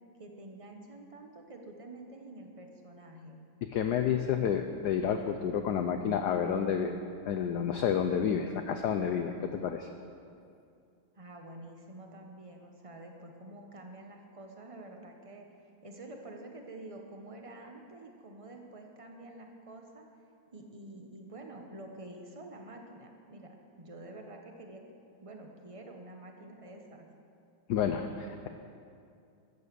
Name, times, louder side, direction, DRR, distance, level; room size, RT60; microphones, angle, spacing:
voice 1, 0.2-3.4 11.1-15.5 15.8-20.1 20.5-24.8 25.2-27.1, right 2 dB, 25° right, 2 dB, 0.7 m, -48 dB
voice 2, 3.7-6.9 7.3-9.9 27.7-28.5, left 8 dB, 80° left, 6 dB, 0.9 m, -30 dB
13.5 x 9.0 x 6.9 m, 2.5 s
omnidirectional pair, 2.4 m